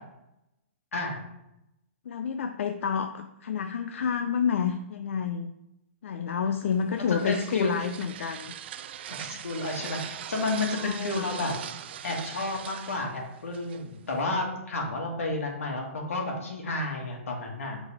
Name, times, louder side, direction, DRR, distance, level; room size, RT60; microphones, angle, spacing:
voice 1, 0.9-1.2 6.9-7.9 9.1-11.5 12.0-17.8, left 2 dB, 90° left, 1 dB, 1.7 m, -31 dB
voice 2, 2.1-5.5 6.0-8.5 10.7-11.3, left 7 dB, 70° left, 8 dB, 0.4 m, -29 dB
sound 1, 6.7-14.2, right 10 dB, 50° right, 0.3 m, -41 dB
6.9 x 4.0 x 3.4 m, 0.88 s
hypercardioid pair, 155°, 7 cm